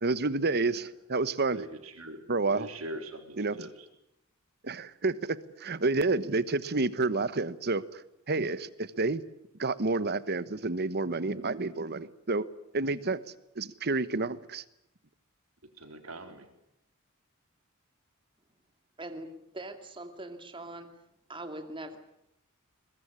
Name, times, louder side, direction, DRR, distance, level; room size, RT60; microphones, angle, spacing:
voice 1, 0.0-1.6 2.3-2.7 3.4-3.7 4.6-8.0 8.3-9.2 9.6-12.4 12.7-13.2 13.6-14.6, right 3 dB, 50° right, 16 dB, 1.2 m, -29 dB
voice 2, 1.5-3.7 15.8-16.5, right 1 dB, 70° right, 6 dB, 4.1 m, -42 dB
voice 3, 19.0-20.9 21.3-22.0, right 1 dB, 25° right, 6 dB, 2.4 m, -42 dB
22.0 x 21.5 x 9.8 m, 0.82 s
head